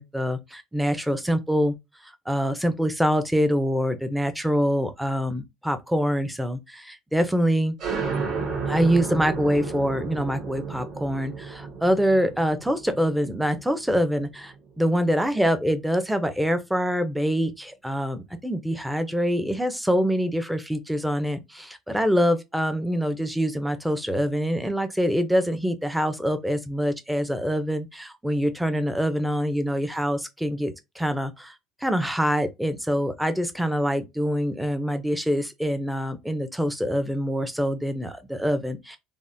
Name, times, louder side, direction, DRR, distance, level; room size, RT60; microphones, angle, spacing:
voice 1, 0.0-1.7 2.3-7.7 8.7-31.5 31.8-39.0, equal, 5° right, 0.5 m, -25 dB
sound 1, 7.8-15.1, right 5 dB, 55° right, 1.3 m, -33 dB
3.4 x 2.1 x 2.5 m
cardioid pair, 120°, 0 cm